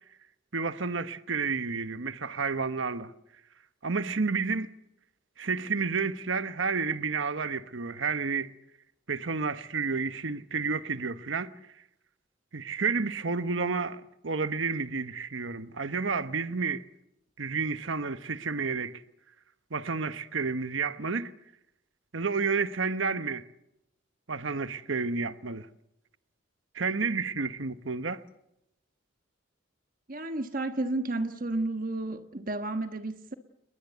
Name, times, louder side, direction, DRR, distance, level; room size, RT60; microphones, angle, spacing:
voice 1, 0.5-3.1 3.8-4.7 5.4-8.5 9.1-11.5 12.5-16.9 17.4-19.0 19.7-21.3 22.1-23.5 24.3-25.7 26.7-28.2, right 4 dB, 70° right, 1.1 m, -30 dB
voice 2, 30.1-33.3, right 2 dB, 45° right, 1.3 m, -32 dB
29.5 x 21.5 x 8.1 m
head